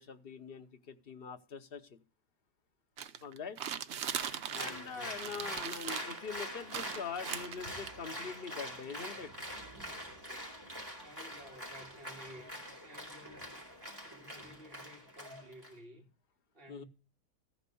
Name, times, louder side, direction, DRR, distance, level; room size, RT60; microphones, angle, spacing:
voice 1, 0.0-2.0 3.2-3.6 4.5-9.3 16.7-16.8, left 6 dB, 45° left, 0.9 m, -43 dB
sound 1, 3.0-4.9 5.1-6.2 6.7-7.9, right 8 dB, 60° right, 0.8 m, -39 dB
voice 2, 3.1-3.4 4.4-5.5 11.0-13.6 14.0-16.1 16.5-16.9, equal, 35° right, 2.6 m, -54 dB
Applause, 4.1-15.7, equal, 15° right, 4.4 m, -45 dB
14.0 x 5.2 x 6.9 m
omnidirectional pair, 1.8 m